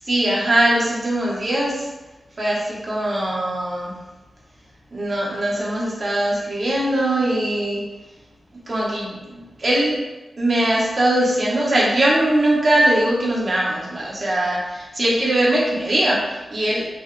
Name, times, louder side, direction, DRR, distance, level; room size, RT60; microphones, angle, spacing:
voice 1, 0.0-1.9 2.4-3.9 4.9-7.8 8.7-10.0 10.4-16.9, right 1 dB, 45° right, -5 dB, 1.5 m, -21 dB
4.6 x 3.3 x 3.4 m, 1.1 s
cardioid pair, 70°, 0 cm